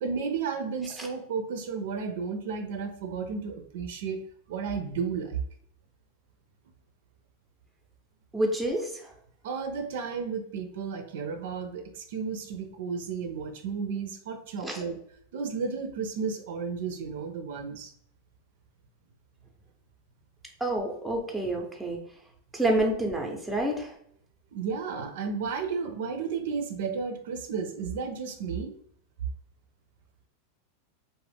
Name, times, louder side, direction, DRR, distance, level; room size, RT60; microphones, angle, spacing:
voice 1, 0.0-4.2 4.5-5.4 9.4-15.0 15.3-17.9 24.5-28.8, right 5 dB, 70° right, 6 dB, 0.4 m, -33 dB
voice 2, 8.3-9.1 14.6-14.8 20.6-22.0 22.5-23.9, right 1 dB, 5° right, 0 dB, 0.6 m, -28 dB
2.4 x 2.1 x 3.4 m, 0.66 s
supercardioid pair, 130°, 0 cm